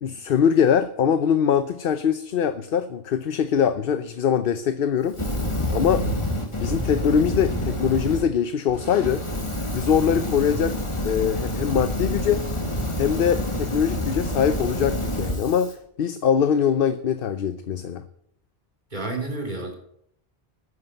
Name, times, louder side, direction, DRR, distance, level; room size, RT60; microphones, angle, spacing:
voice 1, 0.0-6.1 6.6-9.2 9.7-10.8 11.0-12.4 13.0-18.0, left 8 dB, 65° left, 12 dB, 0.9 m, -22 dB
Fire, 5.1-8.3 8.7-15.7, left 1 dB, 30° left, 2.0 m, -28 dB
voice 2, 5.9-6.3 18.9-19.7, right 2 dB, 50° right, 3 dB, 3.5 m, -30 dB
13.5 x 9.6 x 8.0 m, 0.72 s
omnidirectional pair, 1.0 m